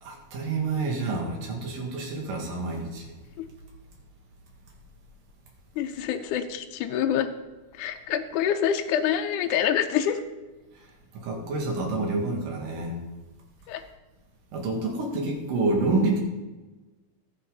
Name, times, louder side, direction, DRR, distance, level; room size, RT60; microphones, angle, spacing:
voice 1, 0.0-3.1 11.1-13.0 14.5-16.2, right 3 dB, 85° right, -1 dB, 3.9 m, -28 dB
voice 2, 5.8-7.3 7.8-10.2 13.7-13.8, left 9 dB, 80° left, 5 dB, 2.1 m, -26 dB
20.5 x 8.3 x 4.0 m, 1.2 s
omnidirectional pair, 3.8 m